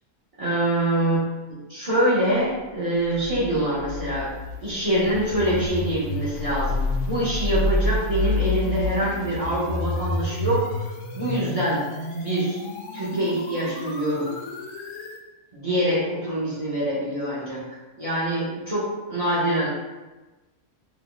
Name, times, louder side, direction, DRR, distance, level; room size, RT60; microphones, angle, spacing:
voice 1, 0.4-4.3 4.6-10.6 11.1-11.8 12.2-12.6 12.9-14.3 15.5-17.6 18.0-19.7, right 1 dB, 60° right, -9 dB, 0.3 m, -25 dB
sound 1, 3.1-15.2, left 2 dB, 90° left, 1.1 m, -29 dB
2.8 x 2.2 x 3.7 m, 1.2 s
omnidirectional pair, 1.6 m